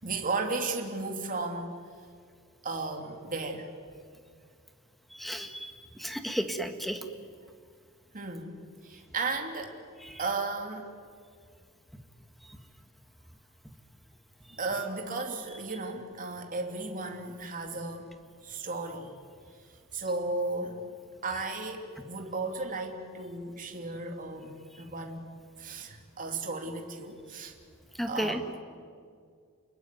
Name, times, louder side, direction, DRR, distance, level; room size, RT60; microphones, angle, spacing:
voice 1, 0.0-1.8 2.6-3.7 8.1-9.8 10.2-10.9 14.5-18.1 18.4-19.1 19.9-20.8 21.2-25.2 25.6-27.5 28.1-28.6, right 3 dB, 40° right, 2 dB, 3.1 m, -35 dB
voice 2, 5.1-5.7 6.0-7.0 10.1-10.2 28.0-28.4, equal, ahead, 6 dB, 1.8 m, -33 dB
30.0 x 21.0 x 9.4 m, 2.1 s
head